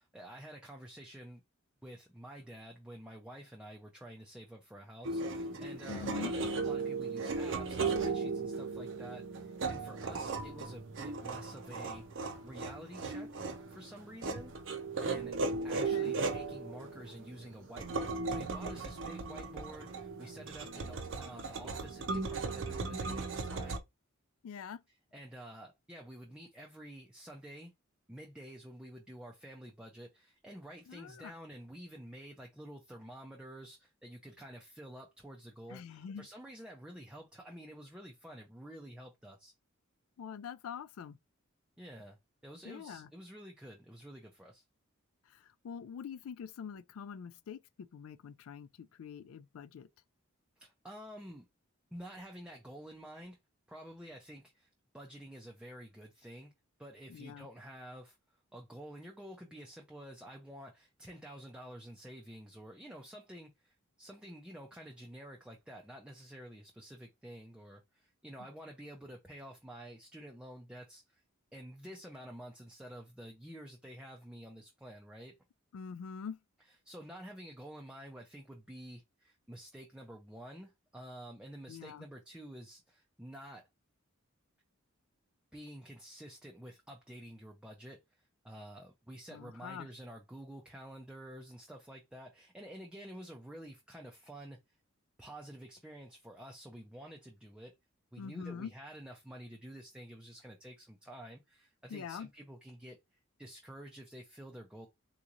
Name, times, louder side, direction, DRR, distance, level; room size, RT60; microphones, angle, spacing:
voice 1, 0.0-1.4 1.8-15.3 15.6-23.8 25.1-27.7 28.1-39.5 41.8-42.2 42.4-44.6 50.6-51.5 51.9-53.4 53.7-54.7 54.9-56.5 56.8-58.2 58.5-71.2 71.5-75.3 76.8-83.6 85.5-88.0 88.4-94.6 95.2-97.7 98.1-103.0 103.4-104.9, right 1 dB, 5° right, 0.4 m, -50 dB
sound 1, 5.0-23.8, right 3 dB, 60° right, 0.6 m, -37 dB
voice 2, 5.9-6.3 15.7-16.1 24.4-24.8 30.9-31.3 35.7-36.3 40.2-41.2 42.6-43.1 45.3-49.9 57.1-57.5 75.7-76.4 81.7-82.0 89.3-89.9 98.2-98.7 101.9-102.3, left 7 dB, 80° left, 0.3 m, -44 dB
3.7 x 3.0 x 2.4 m
head